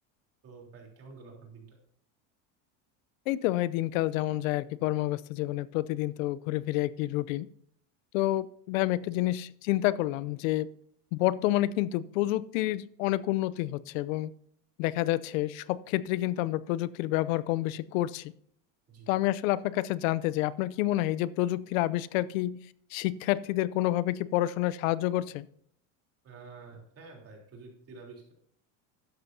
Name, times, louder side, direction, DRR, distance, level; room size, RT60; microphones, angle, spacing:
voice 1, 0.4-1.8 18.9-19.1 26.2-28.3, right 4 dB, 35° right, 0 dB, 3.5 m, -49 dB
voice 2, 3.3-7.5 8.1-10.7 11.1-14.3 14.8-18.3 19.1-22.6 22.9-25.5, left 16 dB, 85° left, 18 dB, 0.6 m, -29 dB
12.5 x 9.6 x 2.7 m, 0.66 s
supercardioid pair, 130°, 39 cm